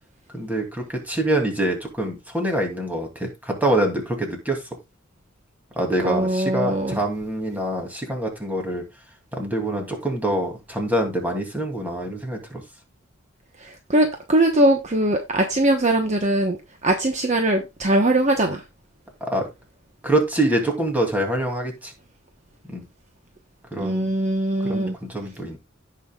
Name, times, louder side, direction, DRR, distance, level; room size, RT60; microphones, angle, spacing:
voice 1, 0.3-4.6 5.8-8.8 9.3-12.6 19.3-19.5 20.0-21.9 22.7-22.8 23.7-24.1 24.6-25.6, right 1 dB, 10° right, 2.6 m, -25 dB
voice 2, 6.0-7.0 13.6-18.6 23.8-25.0, right 1 dB, 35° right, 1.1 m, -21 dB
17.0 x 5.7 x 2.4 m
head